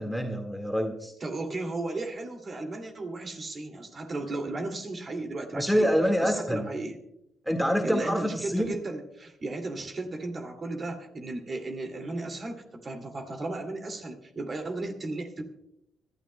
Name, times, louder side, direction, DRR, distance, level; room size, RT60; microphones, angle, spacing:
voice 1, 0.0-1.1 5.5-6.7 7.5-8.7, equal, ahead, 3 dB, 1.8 m, -26 dB
voice 2, 1.2-5.9 6.2-7.0 7.8-15.4, right 2 dB, 40° right, 4 dB, 2.4 m, -35 dB
25.0 x 12.5 x 2.2 m, 0.82 s
cardioid pair, 90°, 0 cm